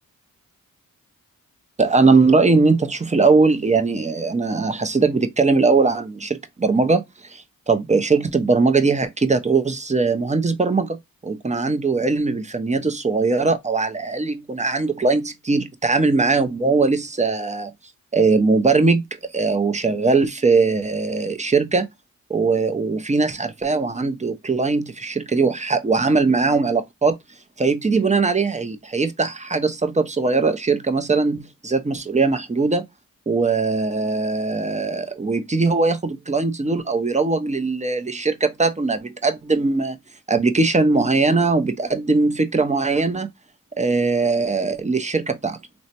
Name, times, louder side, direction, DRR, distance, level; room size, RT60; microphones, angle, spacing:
voice 1, 1.8-7.0 7.3-11.0 11.2-17.7 18.1-19.0 19.3-21.9 22.3-27.1 27.6-32.8 33.3-40.0 40.3-43.3 43.8-45.6, right 4 dB, 20° right, 0.5 m, -20 dB
3.1 x 2.1 x 2.7 m
cardioid pair, 55°, 36 cm